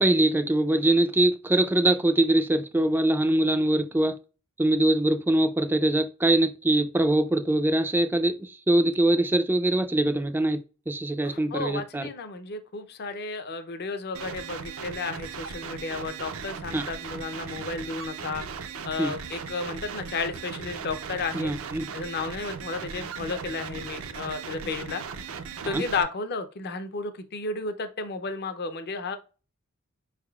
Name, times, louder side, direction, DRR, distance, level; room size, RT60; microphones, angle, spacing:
voice 1, 0.0-4.2 4.6-12.1 16.7-16.8 19.0-19.1 21.3-21.9 25.6-25.8, right 1 dB, 10° right, 0.3 m, -23 dB
voice 2, 11.2-18.4 18.8-21.5 21.9-25.0 25.6-29.2, left 4 dB, 50° left, 0.6 m, -33 dB
sound 1, 14.1-26.0, right 6 dB, 70° right, 0.5 m, -38 dB
5.0 x 3.5 x 2.3 m
head